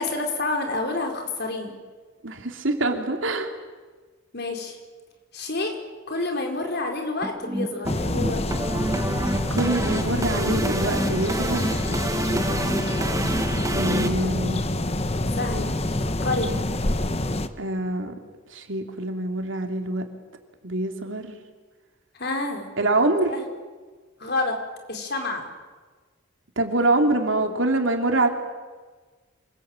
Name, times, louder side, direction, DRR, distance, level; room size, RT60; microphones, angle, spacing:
voice 1, 0.0-1.7 4.3-4.8 5.3-5.8 6.1-8.4 12.5-12.8 15.3-16.5 22.2-22.7 23.3-23.4 24.2-24.6 24.9-25.5, left 2 dB, 55° left, 4 dB, 4.5 m, -29 dB
voice 2, 2.2-3.5 9.5-11.7 13.7-14.6 17.6-18.1 18.5-20.0 20.6-21.4 22.8-23.3 26.6-28.3, right 2 dB, 70° right, 4 dB, 3.1 m, -25 dB
sound 1, 7.2-14.1, right 1 dB, 15° right, 1.3 m, -28 dB
sound 2, 7.8-17.5, left 1 dB, 30° left, 1.1 m, -26 dB
27.5 x 21.5 x 9.0 m, 1.4 s
head